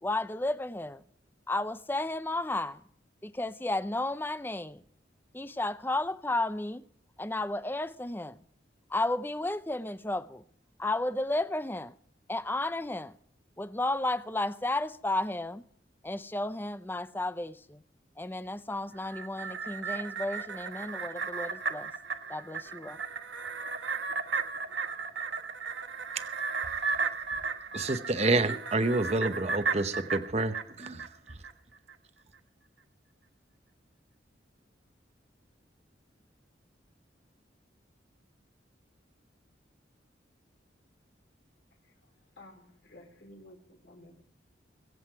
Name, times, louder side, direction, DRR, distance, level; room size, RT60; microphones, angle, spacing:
voice 1, 0.0-1.0 1.5-2.8 3.2-4.8 5.3-6.8 7.2-8.4 8.9-10.4 10.8-11.9 12.3-13.1 13.6-15.6 16.0-17.8 18.2-21.9 22.3-23.0, left 2 dB, 10° left, 0.6 m, -33 dB
sound 1, 19.0-31.5 31.9-32.0, right 5 dB, 75° right, 1.1 m, -35 dB
voice 2, 27.7-31.1, right 2 dB, 35° right, 0.8 m, -28 dB
voice 3, 42.4-44.2, left 1 dB, 65° left, 3.8 m, -53 dB
23.5 x 8.0 x 4.6 m
head